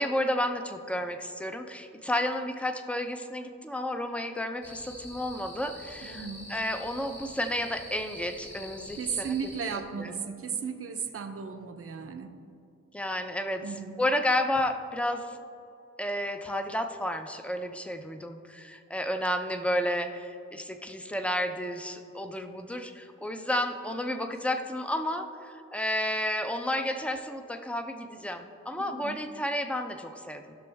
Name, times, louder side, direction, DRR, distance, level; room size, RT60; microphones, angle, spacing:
voice 1, 0.0-9.4 10.0-10.2 12.9-15.4 16.0-30.6, left 1 dB, 5° left, 6 dB, 0.6 m, -31 dB
sound 1, 4.6-9.8, left 1 dB, 55° left, 2.3 m, -46 dB
voice 2, 6.0-6.5 9.0-12.3 13.6-14.0 28.8-29.2, right 6 dB, 45° right, 6 dB, 0.7 m, -35 dB
15.5 x 6.2 x 3.5 m, 2.7 s
wide cardioid pair, 120°, 31 cm